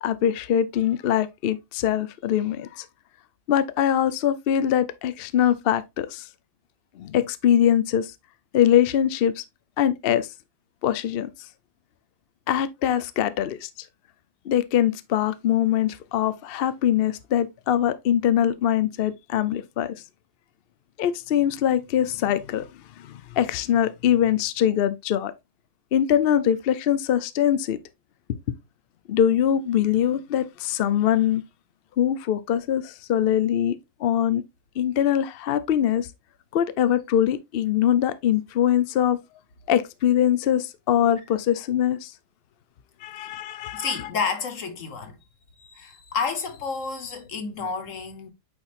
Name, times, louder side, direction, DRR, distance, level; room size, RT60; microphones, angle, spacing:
voice 1, 0.0-2.9 3.5-6.3 7.0-8.1 8.5-9.4 9.8-10.3 10.8-11.3 12.5-13.7 14.4-20.0 21.0-22.7 23.0-25.3 25.9-27.8 29.1-31.4 32.0-34.4 34.8-36.1 36.5-39.2 39.7-42.1 43.0-43.9, left 10 dB, 70° left, 0.5 m, -23 dB
voice 2, 43.7-45.2 45.6-48.3, left 5 dB, 55° left, 1.4 m, -30 dB
8.6 x 4.4 x 2.5 m
omnidirectional pair, 1.7 m